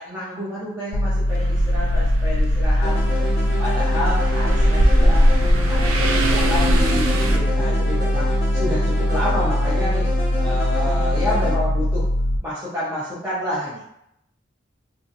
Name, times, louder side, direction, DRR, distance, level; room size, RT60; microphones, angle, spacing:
voice 1, 0.0-3.2 3.6-5.3 5.6-10.1 10.4-12.0 12.4-13.8, left 1 dB, 10° right, -10 dB, 0.6 m, -29 dB
sound 1, 0.9-12.4, left 1 dB, 80° left, 0.3 m, -21 dB
sound 2, 1.3-7.4, equal, 85° right, 0.4 m, -21 dB
sound 3, 2.8-11.5, left 1 dB, 30° left, 0.7 m, -30 dB
2.7 x 2.4 x 2.5 m, 0.80 s
head